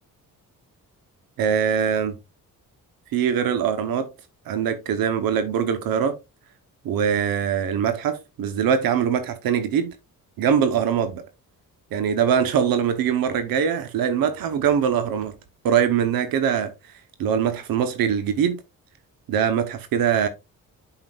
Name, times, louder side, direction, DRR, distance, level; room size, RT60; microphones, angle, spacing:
voice 1, 1.4-2.2 3.1-4.1 4.5-6.1 6.8-9.9 10.4-11.2 11.9-15.3 15.6-16.7 17.2-18.6 19.3-20.3, right 8 dB, 90° right, 0.9 m, -22 dB
7.9 x 5.9 x 2.3 m
cardioid pair, 95°, 34 cm